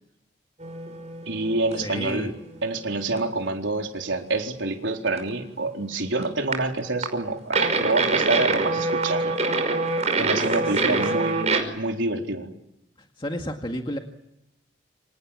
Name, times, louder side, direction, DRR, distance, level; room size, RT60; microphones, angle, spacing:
sound 1, 0.6-1.9 2.3-2.4 3.2-3.3 3.6-3.7 5.2-5.3 6.2-6.5 7.0-7.1 7.5-11.6, right 3 dB, 35° right, 5.4 m, -25 dB
voice 1, 1.3-2.3 2.6-9.4 10.2-12.5, right 2 dB, 75° right, 2 dB, 4.2 m, -27 dB
voice 2, 1.8-2.3 10.5-11.1 13.0-14.0, equal, 25° left, 3 dB, 2.0 m, -32 dB
28.5 x 27.0 x 7.5 m, 0.86 s
head